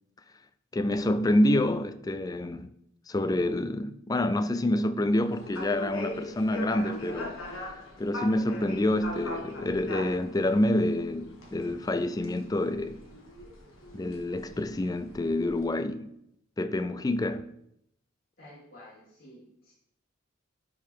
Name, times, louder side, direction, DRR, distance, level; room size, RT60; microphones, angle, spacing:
voice 1, 0.7-2.7 3.1-7.4 8.0-13.0 13.9-16.1 16.6-17.5, left 1 dB, 20° left, 0.3 m, -27 dB
sound 1, 5.2-15.6, left 1 dB, 85° left, 1.5 m, -41 dB
voice 2, 18.4-19.7, left 1 dB, 50° left, 2.6 m, -51 dB
11.5 x 4.7 x 3.5 m
head